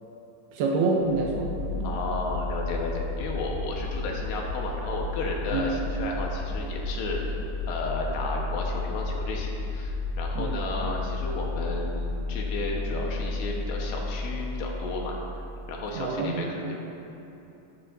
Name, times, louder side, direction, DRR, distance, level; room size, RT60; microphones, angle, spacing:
voice 1, 0.5-1.9 5.5-5.7 10.4-10.6 15.9-16.5, right 3 dB, 75° right, 0 dB, 2.6 m, -27 dB
sound 1, 1.0-15.8, left 2 dB, 60° left, 3.4 m, -32 dB
voice 2, 1.8-7.2 7.7-15.2 15.7-16.8, left 2 dB, 75° left, -1 dB, 3.3 m, -33 dB
13.5 x 13.0 x 2.7 m, 3.0 s
omnidirectional pair, 5.0 m